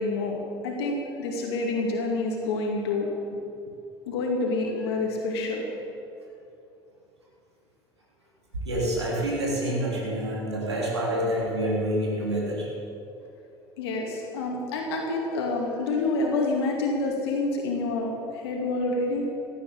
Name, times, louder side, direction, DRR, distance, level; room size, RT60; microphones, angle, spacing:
voice 1, 0.0-3.1 4.1-5.7 13.8-19.3, left 2 dB, 75° left, 0 dB, 2.5 m, -28 dB
voice 2, 8.5-12.7, right 1 dB, 90° right, -3 dB, 3.2 m, -27 dB
16.0 x 9.0 x 8.7 m, 2.6 s
hypercardioid pair, 70°, 14 cm